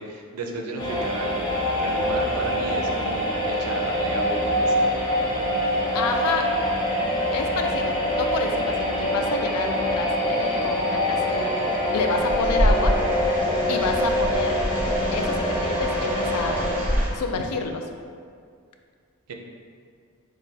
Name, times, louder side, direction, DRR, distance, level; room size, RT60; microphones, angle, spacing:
voice 1, 0.0-5.0 19.3-19.4, right 2 dB, 90° right, 2 dB, 0.5 m, -33 dB
sound 1, 0.8-16.7, equal, 20° left, 0.8 m, -24 dB
voice 2, 5.9-6.5 7.0-13.0 13.7-14.5 15.1-16.7 17.1-17.9, left 4 dB, 85° left, 4 dB, 0.4 m, -29 dB
sound 2, 12.1-17.1, equal, 5° right, 0.5 m, -27 dB
6.3 x 2.1 x 2.6 m, 2.2 s
head